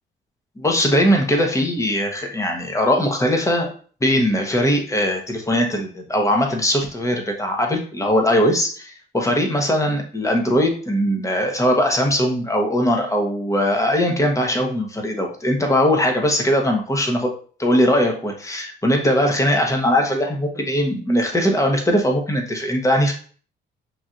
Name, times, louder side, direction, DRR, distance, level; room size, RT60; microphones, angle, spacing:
voice 1, 0.6-3.7 4.0-17.3 17.6-23.1, equal, 15° left, 2 dB, 1.0 m, -20 dB
5.9 x 2.7 x 2.5 m, 0.43 s
cardioid pair, 90°, 20 cm